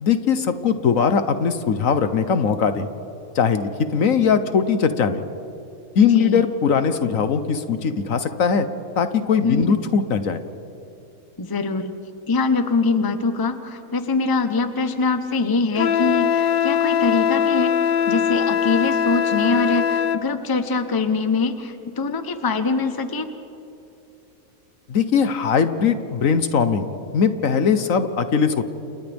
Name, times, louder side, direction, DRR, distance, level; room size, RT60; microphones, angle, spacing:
voice 1, 0.0-2.9 3.3-5.2 5.9-8.7 9.0-10.4 24.9-26.9 27.1-28.6, left 6 dB, 65° left, 10 dB, 1.3 m, -20 dB
voice 2, 6.0-6.4 9.4-9.8 11.4-12.0 12.3-23.3, left 4 dB, 20° left, 8 dB, 0.8 m, -23 dB
Wind instrument woodwind instrument, 15.8-20.2, left 8 dB, 50° left, 0.7 m, -21 dB
30.0 x 28.0 x 3.5 m, 2.7 s
omnidirectional pair, 1.5 m